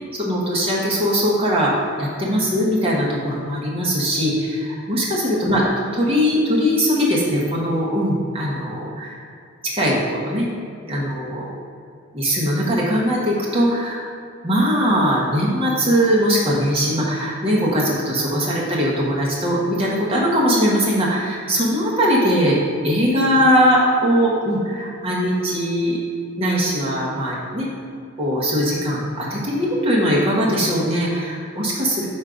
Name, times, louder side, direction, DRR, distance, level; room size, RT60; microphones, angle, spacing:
voice 1, 0.1-5.6 5.9-9.1 9.7-10.5 10.9-11.5 12.1-14.0 14.4-22.6 22.8-26.0 26.4-27.7 28.2-32.1, equal, 25° right, -5 dB, 1.2 m, -20 dB
5.2 x 4.2 x 5.0 m, 2.3 s
head